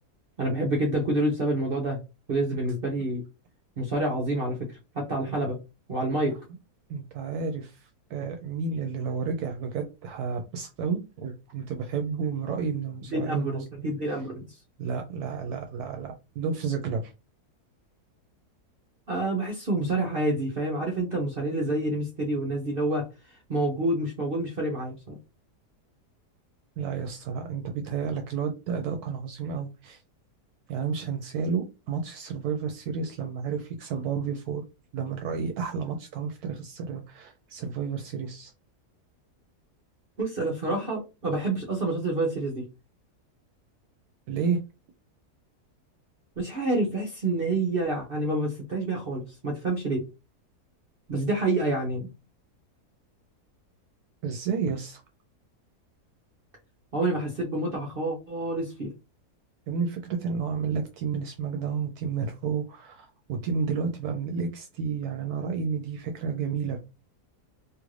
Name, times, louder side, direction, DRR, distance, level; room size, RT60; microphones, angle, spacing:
voice 1, 0.4-2.0 2.3-3.2 3.8-5.6 5.9-6.3 13.1-14.5 19.1-25.2 40.2-42.6 46.4-50.0 51.1-52.1 56.9-58.9, right 2 dB, 50° right, 0.8 m, -28 dB
voice 2, 6.9-13.9 14.8-17.1 26.8-30.0 30.7-34.6 34.9-38.5 40.8-40.9 44.3-44.6 54.2-55.0 59.7-66.8, right 5 dB, 80° right, 1.1 m, -31 dB
3.0 x 2.5 x 3.1 m
omnidirectional pair, 1.7 m